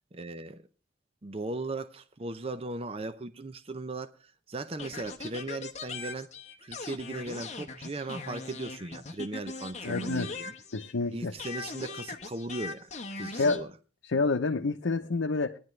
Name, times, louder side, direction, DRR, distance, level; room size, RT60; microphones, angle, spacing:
voice 1, 0.1-0.6 1.2-6.3 6.6-10.5 11.1-12.9 13.2-13.7, right 2 dB, 30° right, 0.5 m, -37 dB
sound 1, 4.8-11.1 11.4-13.6, left 3 dB, 35° left, 1.0 m, -40 dB
voice 2, 9.8-10.3 10.7-11.3 13.4-13.7 14.0-15.5, left 3 dB, 85° left, 0.7 m, -28 dB
18.5 x 10.5 x 3.2 m
head